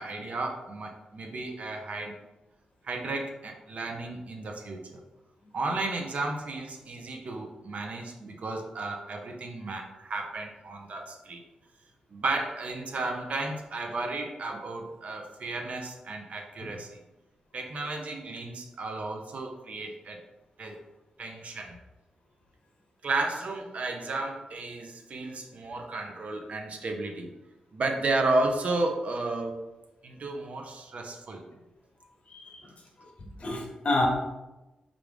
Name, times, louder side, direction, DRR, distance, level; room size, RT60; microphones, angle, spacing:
voice 1, 0.0-2.1 2.8-5.0 5.5-11.4 12.1-16.9 17.5-20.2 20.6-20.8 21.2-21.8 23.0-27.3 27.7-29.5 30.0-31.5, right 2 dB, 60° right, 3 dB, 0.6 m, -33 dB
voice 2, 32.3-32.7 33.4-34.1, left 2 dB, 50° left, 1 dB, 0.9 m, -29 dB
3.4 x 2.5 x 3.3 m, 1.0 s
supercardioid pair, 45°, 3 cm